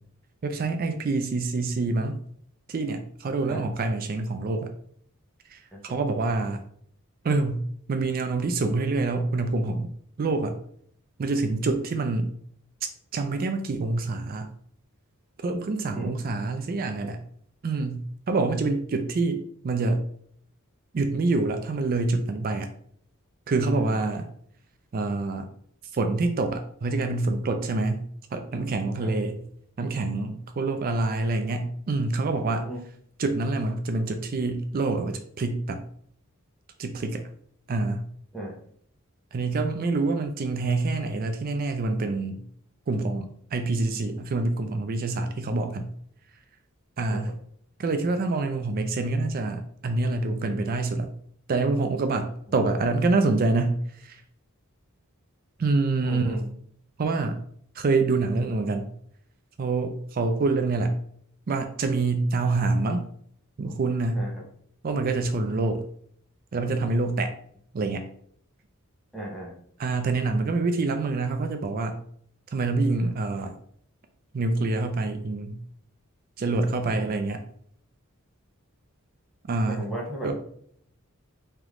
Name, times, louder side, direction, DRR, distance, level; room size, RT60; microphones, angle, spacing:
voice 1, 0.4-2.2 2.7-4.7 5.5-6.6 7.2-9.9 10.2-10.5 11.2-12.3 13.1-14.5 15.4-17.2 17.6-20.0 20.9-22.7 23.5-24.3 24.9-25.5 25.9-28.0 28.3-29.4 29.8-32.7 33.2-35.8 36.8-37.2 37.7-38.1 39.3-42.4 42.9-45.9 47.0-47.3 47.8-51.1 51.5-54.2 55.6-56.4 57.0-57.4 57.7-58.9 59.6-61.0 61.5-63.0 63.6-64.3 64.8-65.8 66.5-67.3 67.7-68.1 69.8-72.0 72.5-73.6 74.3-75.6 76.4-77.4 79.5-79.9 80.2-80.4, right 3 dB, 45° right, 7 dB, 0.4 m, -26 dB
voice 2, 56.0-56.4 64.1-64.4 69.1-69.5 76.8-77.3 79.7-80.3, right 1 dB, ahead, -5 dB, 1.1 m, -36 dB
3.4 x 3.0 x 3.6 m, 0.62 s
head